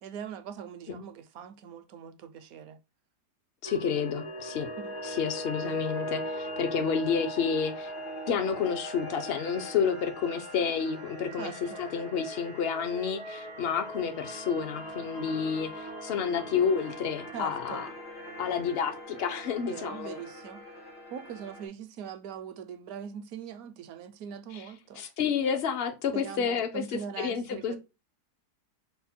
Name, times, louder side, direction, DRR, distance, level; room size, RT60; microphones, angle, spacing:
voice 1, 0.0-2.8 4.8-4.9 11.4-11.9 17.3-17.9 19.7-20.6 21.1-25.0 26.1-27.8, right 8 dB, 70° right, 1.0 m, -41 dB
sound 1, 3.6-21.7, equal, 75° left, 1.7 m, -40 dB
voice 2, 3.6-4.7 5.0-7.9 8.3-11.5 11.8-17.9 18.4-20.2 24.5-24.6 25.0-27.8, left 6 dB, 60° left, 0.6 m, -30 dB
5.8 x 2.2 x 4.2 m
omnidirectional pair, 1.7 m